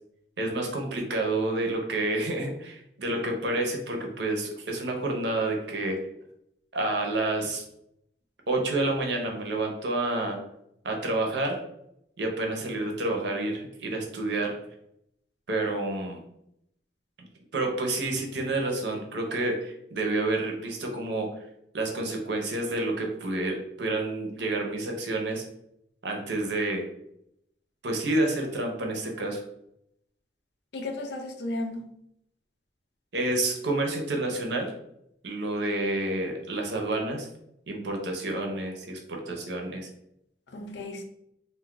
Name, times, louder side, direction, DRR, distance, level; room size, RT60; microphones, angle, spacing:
voice 1, 0.4-6.1 6.7-7.6 8.5-10.4 10.8-11.6 12.2-14.6 15.5-16.2 17.2-17.3 17.5-21.5 21.7-25.4 26.0-26.9 27.8-29.4 33.1-34.8 35.2-37.3 37.7-39.9, right 2 dB, 65° right, 2 dB, 0.7 m, -29 dB
voice 2, 30.7-31.8 40.5-41.0, left 2 dB, 65° left, 4 dB, 0.5 m, -34 dB
2.5 x 2.3 x 3.6 m, 0.76 s
head